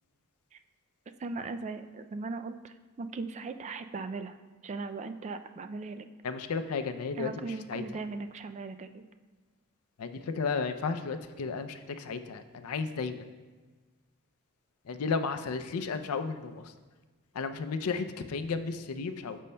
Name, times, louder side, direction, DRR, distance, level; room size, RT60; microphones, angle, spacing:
voice 1, 1.2-4.4 4.6-6.1 7.2-9.0, right 3 dB, 30° right, 9 dB, 0.3 m, -38 dB
voice 2, 6.2-7.8 10.0-13.2 14.9-16.7 17.3-19.4, left 5 dB, 75° left, 10 dB, 0.5 m, -33 dB
13.5 x 5.3 x 2.2 m, 1.3 s
head